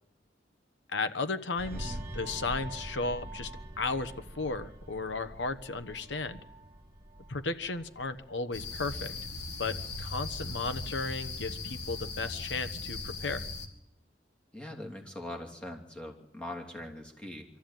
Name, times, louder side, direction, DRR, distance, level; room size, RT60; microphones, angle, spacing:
voice 1, 0.9-3.5 3.8-6.4 7.3-9.1 9.6-13.4, left 3 dB, 80° left, 11 dB, 1.2 m, -34 dB
sound 1, 1.6-10.6 11.0-11.2, right 1 dB, 35° right, 2.0 m, -45 dB
voice 2, 1.7-2.0 14.5-17.4, left 1 dB, 5° left, 1 dB, 3.0 m, -42 dB
sound 2, 8.5-13.7, left 3 dB, 65° left, 2.4 m, -38 dB
23.5 x 14.0 x 9.2 m, 0.82 s
head